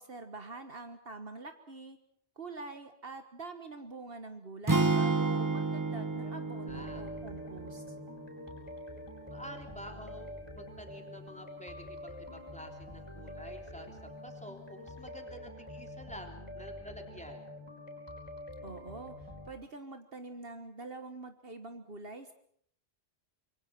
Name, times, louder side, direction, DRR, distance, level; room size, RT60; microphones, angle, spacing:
voice 1, 0.0-2.0 2.4-7.9 18.6-19.2 19.4-22.3, right 3 dB, 60° right, 8 dB, 1.7 m, -45 dB
sound 1, 4.7-8.8, right 3 dB, 20° right, 1.0 m, -31 dB
voice 2, 6.2-7.0 9.3-10.3 10.5-17.4, equal, 5° left, 3 dB, 3.4 m, -49 dB
sound 2, 6.7-19.5, left 1 dB, 20° left, 5.3 m, -46 dB
26.0 x 23.0 x 6.0 m, 0.64 s
omnidirectional pair, 1.2 m